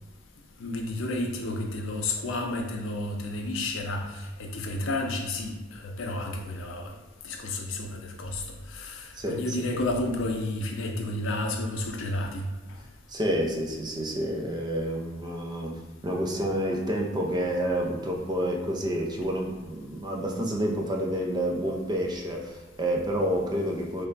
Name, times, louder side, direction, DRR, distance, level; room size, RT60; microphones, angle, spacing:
voice 1, 0.6-6.9 7.2-8.4 8.7-12.4, left 2 dB, 85° left, 2 dB, 0.5 m, -31 dB
voice 2, 13.1-24.1, equal, 20° right, 0 dB, 0.4 m, -29 dB
3.2 x 2.2 x 3.8 m, 1.2 s
head